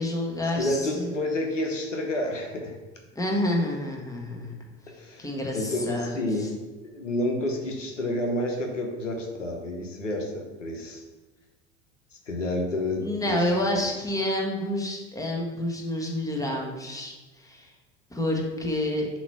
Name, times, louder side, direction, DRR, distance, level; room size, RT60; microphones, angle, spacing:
voice 1, 0.0-1.1 3.1-4.5 5.2-6.5 13.0-17.7 18.1-19.1, left 1 dB, 10° left, 0 dB, 1.4 m, -29 dB
voice 2, 0.6-2.7 5.0-5.3 5.5-6.5 6.9-11.0 12.3-13.0 13.3-13.4, left 1 dB, 85° left, 2 dB, 1.1 m, -29 dB
7.2 x 3.1 x 5.6 m, 1.2 s
figure-of-eight pair, 75°, 36 cm